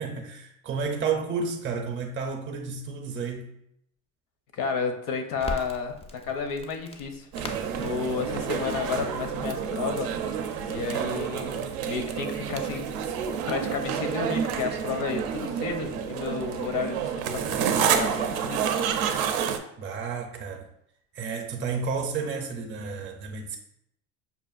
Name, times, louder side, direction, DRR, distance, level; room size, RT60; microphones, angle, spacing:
voice 1, 0.0-3.5 19.8-20.7 21.1-23.6, right 5 dB, 35° right, 0.5 m, -31 dB
voice 2, 4.5-7.3 7.8-10.1 10.7-12.9 13.5-18.6, left 5 dB, 65° left, 0.7 m, -32 dB
Crackle, 5.4-13.3, left 1 dB, 20° left, 0.4 m, -44 dB
sound 1, 7.3-19.6, right 7 dB, 90° right, 0.5 m, -29 dB
5.4 x 2.4 x 2.3 m
cardioid pair, 115°, 34 cm